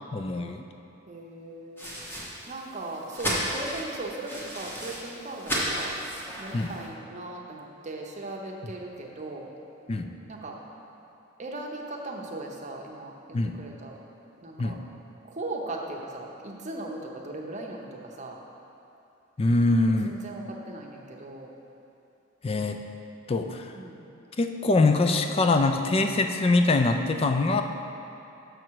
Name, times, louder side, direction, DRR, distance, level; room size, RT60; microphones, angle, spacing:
voice 1, 0.1-0.6 6.5-6.7 9.9-10.1 13.3-13.6 14.6-14.8 19.4-20.2 22.4-22.8 23.3-23.7 24.4-27.6, left 2 dB, 30° left, 6 dB, 0.3 m, -23 dB
voice 2, 1.1-1.9 2.5-5.9 6.4-9.5 10.3-10.6 11.4-13.9 14.4-14.8 15.3-18.4 19.9-21.5 23.7-24.0, right 2 dB, 35° right, 0 dB, 0.7 m, -38 dB
sound 1, 1.8-6.9, equal, 10° left, 1.0 m, -34 dB
6.4 x 6.1 x 4.6 m, 2.8 s
head